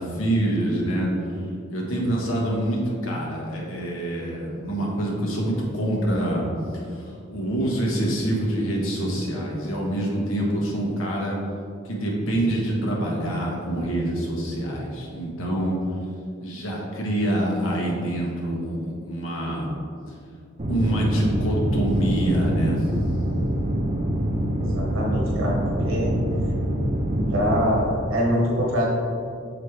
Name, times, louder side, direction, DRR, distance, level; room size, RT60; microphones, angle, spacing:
voice 1, 0.0-1.4 1.7-6.5 6.7-11.4 11.8-15.8 16.4-19.7 20.1-20.2 20.7-22.9, right 1 dB, 90° left, -3 dB, 1.4 m, -26 dB
sound 1, 20.6-27.6, equal, 35° right, 0.6 m, -25 dB
voice 2, 24.6-26.2 27.1-28.9, equal, 75° right, -4 dB, 1.2 m, -24 dB
6.5 x 5.1 x 3.3 m, 2.4 s
head